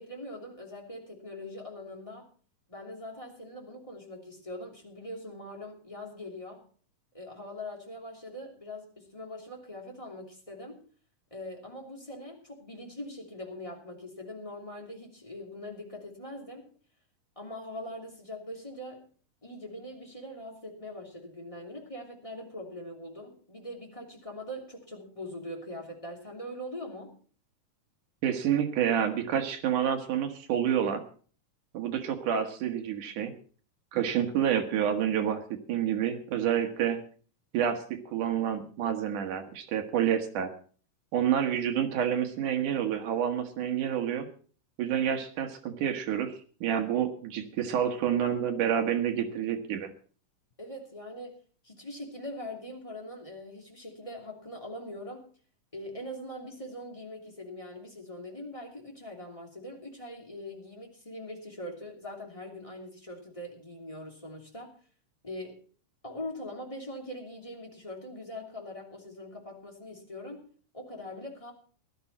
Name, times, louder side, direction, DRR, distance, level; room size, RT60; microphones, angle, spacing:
voice 1, 0.0-2.3 2.7-6.6 7.1-10.8 11.3-16.7 17.4-19.0 19.4-27.1 50.6-51.4 51.6-55.3 55.7-64.7 65.2-65.6 66.0-70.5 70.7-71.5, left 1 dB, 10° left, 0 dB, 2.6 m, -42 dB
voice 2, 28.2-31.0 31.7-33.3 33.9-37.0 37.5-40.5 41.1-44.3 44.8-46.3 46.6-49.9, right 9 dB, 70° right, 5 dB, 2.8 m, -28 dB
16.5 x 12.5 x 4.2 m, 0.42 s
omnidirectional pair, 3.8 m